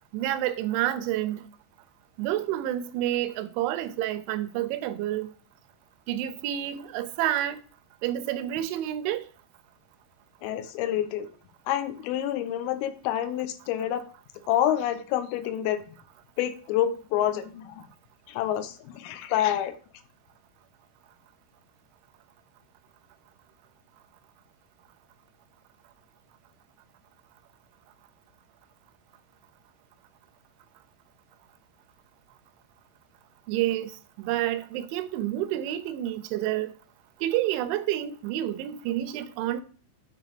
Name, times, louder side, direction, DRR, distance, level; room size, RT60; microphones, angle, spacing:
voice 1, 0.1-1.4 2.2-5.3 6.1-7.6 8.0-9.3 33.5-33.9 34.2-36.7 37.2-39.6, right 13 dB, 80° right, 2.8 m, -29 dB
voice 2, 10.4-11.3 11.7-14.1 14.5-15.8 16.4-17.8 18.3-19.7, left 11 dB, 85° left, 3.6 m, -28 dB
9.1 x 4.4 x 6.9 m
omnidirectional pair, 5.9 m